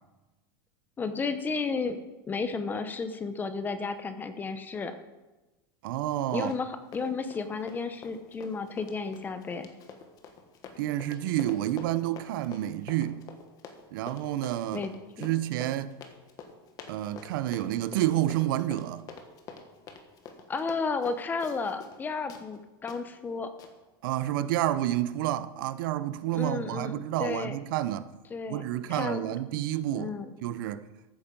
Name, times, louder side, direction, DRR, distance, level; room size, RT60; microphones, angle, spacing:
voice 1, 1.0-2.0 2.3-5.0 6.3-9.7 14.7-15.3 20.5-23.5 26.3-26.9 27.2-27.6 28.3-28.6 28.9-29.2 29.9-30.3, left 4 dB, 15° left, 0.8 m, -32 dB
voice 2, 5.8-6.5 10.8-13.2 13.9-14.9 15.2-15.9 16.9-19.1 24.0-28.1 28.5-30.2 30.4-30.8, right 13 dB, 65° right, 0.7 m, -29 dB
Run, 6.4-6.7 6.9-22.0 22.3-22.4 22.9-23.0 23.6-23.7, left 6 dB, 30° left, 1.5 m, -47 dB
14.5 x 9.1 x 5.4 m
supercardioid pair, 155°, 12 cm